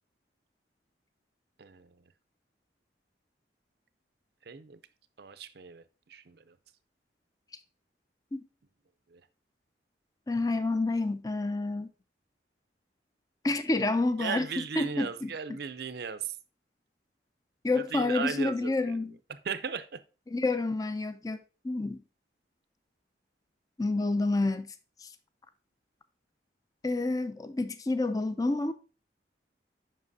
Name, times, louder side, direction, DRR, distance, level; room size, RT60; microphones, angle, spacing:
voice 1, 1.6-2.0 4.4-4.8 5.2-6.6 9.1-9.2 14.2-16.4 17.7-19.0 19.3-20.0, right 6 dB, 60° right, 0.5 m, -37 dB
voice 2, 10.3-11.9 13.4-14.5 14.8-15.3 17.6-19.2 20.3-21.4 21.6-22.0 23.8-24.7 25.0-25.1 26.8-28.7, left 2 dB, 20° left, 0.4 m, -29 dB
7.4 x 5.6 x 2.7 m
head